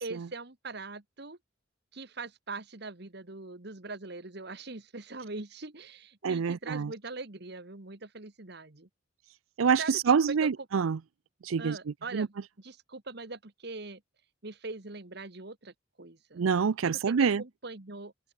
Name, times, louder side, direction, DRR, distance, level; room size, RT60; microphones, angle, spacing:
voice 1, 0.0-1.4 1.9-8.9 9.6-10.0 10.4-10.5 11.6-14.0 14.4-16.4 16.8-18.3, right 3 dB, 55° right, 1.6 m, -42 dB
voice 2, 6.2-6.9 9.6-11.0 11.4-11.8 12.1-12.3 16.4-17.4, right 6 dB, 90° right, 0.5 m, -26 dB
head